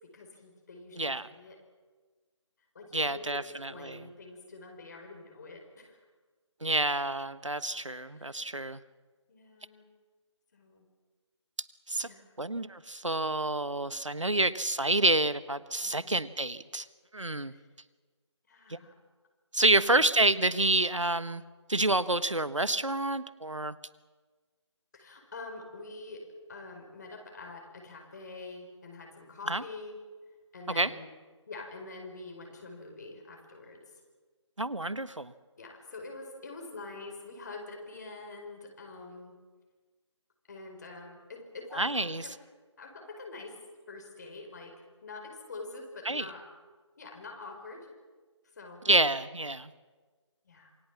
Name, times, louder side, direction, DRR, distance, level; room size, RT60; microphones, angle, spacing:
voice 1, 0.0-1.6 2.7-6.0 8.0-8.5 9.3-9.8 10.5-10.9 12.0-12.3 14.2-14.4 15.8-16.3 17.5-17.7 18.5-18.9 19.8-20.0 24.9-26.2 26.5-30.0 30.5-31.1 31.5-33.9 35.6-39.4 40.5-42.3 42.8-43.6 43.9-44.7 45.0-46.4 47.0-47.9 48.5-48.8 50.4-50.7, left 3 dB, 35° left, 2 dB, 4.9 m, -45 dB
voice 2, 1.0-1.3 2.9-4.0 6.6-8.8 11.9-12.1 12.4-16.8 17.1-17.5 18.7-18.8 19.5-21.4 21.7-23.7 29.5-29.6 30.7-30.9 34.6-35.3 41.8-42.2 46.1-46.3 48.8-49.7, right 2 dB, 80° right, 15 dB, 1.3 m, -28 dB
27.5 x 23.0 x 7.3 m, 1.4 s
figure-of-eight pair, 155°, 16 cm